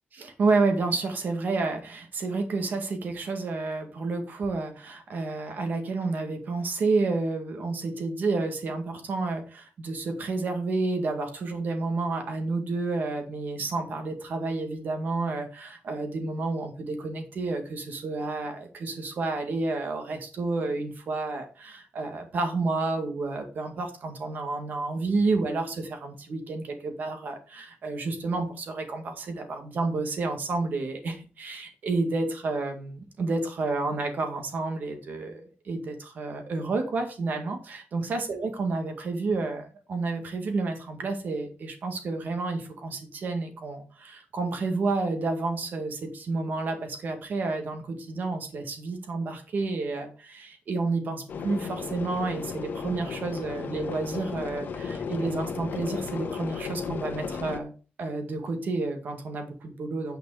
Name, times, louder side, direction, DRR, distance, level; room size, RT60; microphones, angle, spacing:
voice 1, 0.1-57.7 58.0-60.2, right 3 dB, 55° right, 5 dB, 1.9 m, -30 dB
sound 1, 51.3-57.6, left 5 dB, 60° left, 1.2 m, -34 dB
9.1 x 5.2 x 4.9 m, 0.35 s
wide cardioid pair, 175°, 4 cm